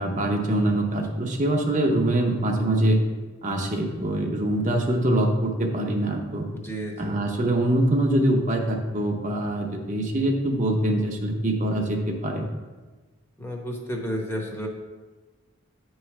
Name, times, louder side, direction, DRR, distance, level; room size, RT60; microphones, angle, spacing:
voice 1, 0.0-3.0 3.4-6.5 7.0-12.5, right 1 dB, 35° right, 1 dB, 0.7 m, -24 dB
voice 2, 6.5-7.2 13.4-14.7, equal, 10° left, 0 dB, 0.9 m, -32 dB
8.8 x 3.2 x 5.8 m, 1.3 s
head